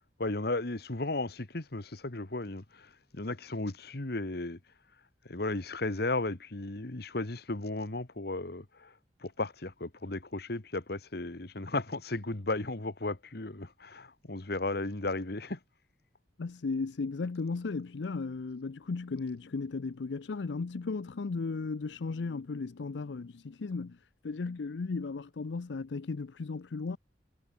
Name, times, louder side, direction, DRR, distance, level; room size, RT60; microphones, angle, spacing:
voice 1, 0.2-4.6 5.3-8.9 9.2-15.6, left 2 dB, 65° left, 1.6 m, -35 dB
voice 2, 16.4-27.0, left 4 dB, 90° left, 0.6 m, -35 dB
head